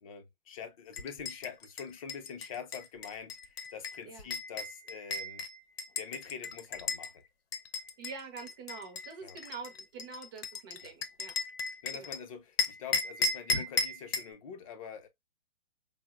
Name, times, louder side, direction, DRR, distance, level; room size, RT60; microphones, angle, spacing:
voice 1, 0.0-5.5 6.0-7.2 9.2-9.4 10.8-10.9 11.8-15.1, left 7 dB, 35° left, 0.5 m, -45 dB
sound 1, 0.9-7.1 7.5-12.2 12.6-14.3, left 4 dB, 80° left, 0.7 m, -35 dB
voice 2, 8.0-11.4 11.9-12.2, right 5 dB, 20° right, 0.4 m, -45 dB
4.3 x 2.0 x 2.2 m
hypercardioid pair, 160°, 30 cm